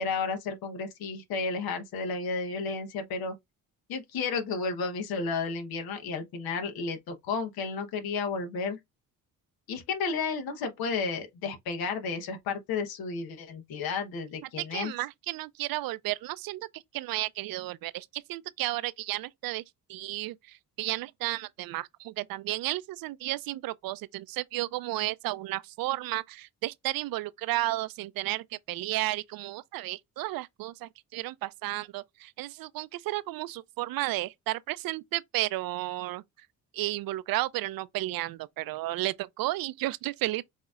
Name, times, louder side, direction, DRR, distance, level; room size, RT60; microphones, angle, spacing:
voice 1, 0.0-3.3 3.9-8.8 9.7-14.9, left 4 dB, 75° left, 1.1 m, -32 dB
voice 2, 14.6-19.6 19.9-36.2 36.7-40.4, right 17 dB, 70° right, 0.5 m, -33 dB
7.1 x 2.8 x 2.4 m
supercardioid pair, 60°, 36 cm